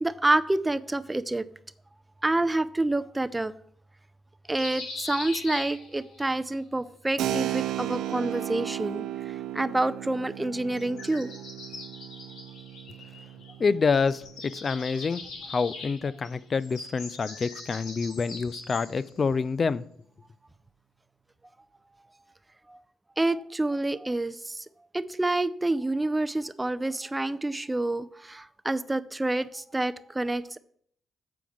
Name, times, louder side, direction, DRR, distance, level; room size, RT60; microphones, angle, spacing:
voice 1, 0.0-1.4 2.2-3.5 4.5-11.3 22.7-22.8 23.2-24.7 24.9-30.6, right 2 dB, 15° right, 0.5 m, -28 dB
sound 1, 4.5-6.3 7.7-8.8 10.7-13.7 13.9-19.1, left 3 dB, 80° left, 2.7 m, -42 dB
Keyboard (musical), 7.2-15.6, right 13 dB, 85° right, 0.4 m, -35 dB
voice 2, 13.6-19.8, left 5 dB, 40° left, 0.4 m, -27 dB
7.8 x 4.8 x 7.2 m
cardioid pair, 85°, 0 cm